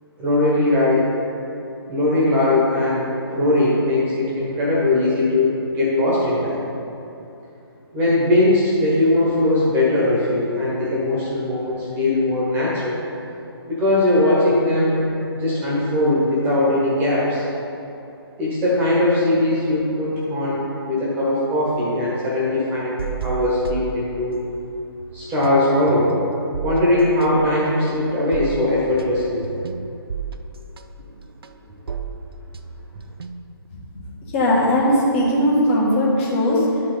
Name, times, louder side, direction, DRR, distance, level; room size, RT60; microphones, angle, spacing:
voice 1, 0.2-1.1 1.9-6.6 7.9-13.0 13.7-15.0 15.3-17.4 18.4-24.4 25.1-26.1 26.6-29.4, left 1 dB, 15° right, -6 dB, 1.4 m, -20 dB
sound 1, 23.0-24.7 25.0-33.7, right 6 dB, 65° right, 0.5 m, -33 dB
voice 2, 34.0-36.8, equal, 30° left, -6 dB, 1.7 m, -19 dB
11.0 x 4.7 x 3.9 m, 2.8 s
figure-of-eight pair, 140°, 13 cm